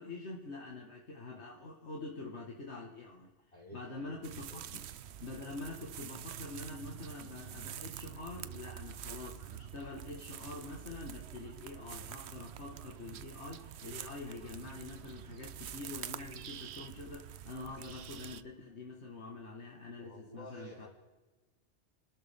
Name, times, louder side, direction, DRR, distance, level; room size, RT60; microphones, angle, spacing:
voice 1, 0.0-3.3 3.7-4.9 5.2-20.9, left 3 dB, 70° left, -1 dB, 2.0 m, -45 dB
voice 2, 3.5-4.2 4.5-4.6 20.0-20.9, left 1 dB, 35° left, -3 dB, 5.2 m, -51 dB
sound 1, 4.2-18.4, right 10 dB, 70° right, 0.9 m, -47 dB
29.5 x 13.0 x 3.6 m, 1.2 s
omnidirectional pair, 1.2 m